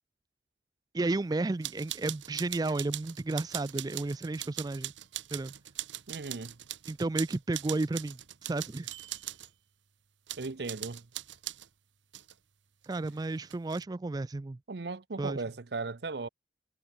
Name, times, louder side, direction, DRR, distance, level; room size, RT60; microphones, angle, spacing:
voice 1, 0.9-4.9 5.3-5.5 6.9-8.2 8.5-8.9 12.9-14.6 15.2-15.4, right 2 dB, 20° right, 0.3 m, -32 dB
sound 1, 1.6-9.5 10.3-11.7 12.1-12.3 12.8-13.8, right 14 dB, 75° right, 1.2 m, -41 dB
voice 2, 6.1-6.6 10.4-11.1 14.7-16.3, right 3 dB, 60° right, 0.7 m, -37 dB
head